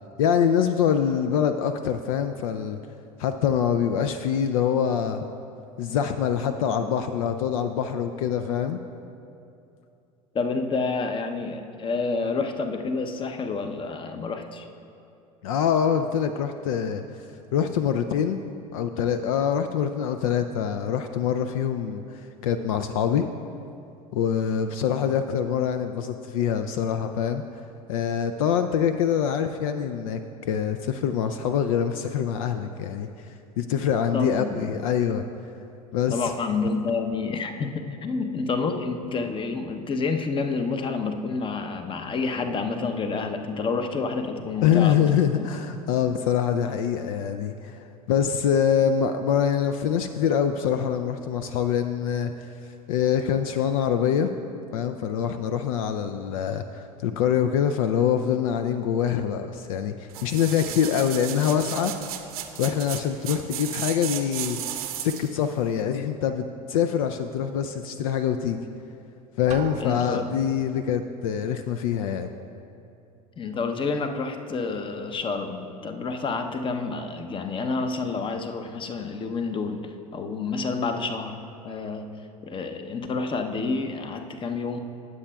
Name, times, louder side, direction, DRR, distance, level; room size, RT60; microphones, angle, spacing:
voice 1, 0.2-2.8 3.2-5.3 5.8-8.8 15.4-17.3 17.5-18.4 18.7-23.3 24.1-27.6 27.9-33.3 33.6-35.2 35.9-36.3 44.6-52.5 52.9-54.3 54.7-61.9 62.6-64.6 65.0-68.6 69.4-72.3, left 8 dB, 65° left, 8 dB, 0.4 m, -25 dB
voice 2, 10.3-14.7 34.1-34.7 36.1-45.0 45.4-45.5 69.8-70.3 73.4-81.4 81.6-84.8, left 4 dB, 25° left, 6 dB, 0.7 m, -29 dB
sound 1, 60.1-65.4 65.8-65.9, right 11 dB, 70° right, 0.8 m, -34 dB
Drum, 69.5-70.7, right 8 dB, 35° right, 0.6 m, -39 dB
19.0 x 7.5 x 2.3 m, 2.6 s
figure-of-eight pair, 75°, 19 cm